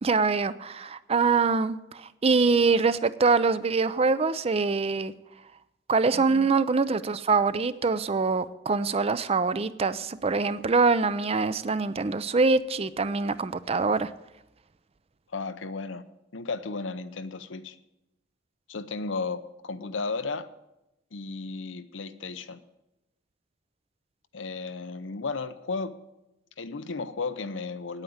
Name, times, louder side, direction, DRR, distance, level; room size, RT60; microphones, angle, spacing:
voice 1, 0.0-5.1 5.9-14.1, right 4 dB, 30° right, 15 dB, 0.5 m, -24 dB
voice 2, 6.1-6.5 15.3-16.0 16.3-17.8 18.7-20.5 21.1-22.6 24.3-25.9 26.6-28.0, left 4 dB, 85° left, 11 dB, 0.8 m, -34 dB
9.4 x 9.0 x 8.7 m, 0.91 s
head